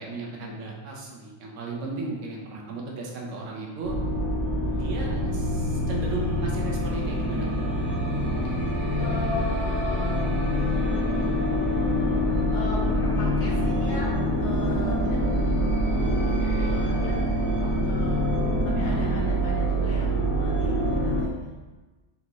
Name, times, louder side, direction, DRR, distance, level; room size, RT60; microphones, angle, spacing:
voice 1, 0.0-3.9 4.7-7.6 16.2-16.8 18.7-19.1, right 3 dB, 85° right, -2 dB, 1.1 m, -36 dB
sound 1, 3.8-21.2, equal, 55° right, 0.8 m, -25 dB
voice 2, 9.0-10.2 10.7-11.4 12.5-15.6 16.7-18.2 18.6-21.5, left 1 dB, 70° left, -4 dB, 1.3 m, -38 dB
4.0 x 3.3 x 3.0 m, 1.2 s
omnidirectional pair, 1.2 m